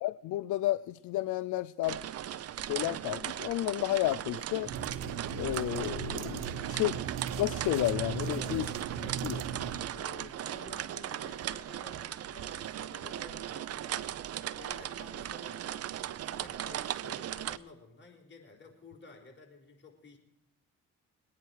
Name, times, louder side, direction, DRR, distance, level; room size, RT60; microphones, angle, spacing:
voice 1, 0.0-2.0 2.7-4.7 5.3-7.0 7.4-8.6 9.2-9.4, left 16 dB, 75° left, 14 dB, 0.5 m, -31 dB
sound 1, 1.8-17.6, right 11 dB, 55° right, 0.6 m, -38 dB
sound 2, 4.6-9.9, right 7 dB, 90° right, 1.1 m, -38 dB
voice 2, 8.2-9.2 9.9-14.2 14.5-20.2, left 3 dB, 40° left, 0 dB, 4.4 m, -53 dB
22.0 x 9.6 x 4.6 m, 0.83 s
cardioid pair, 90°, 30 cm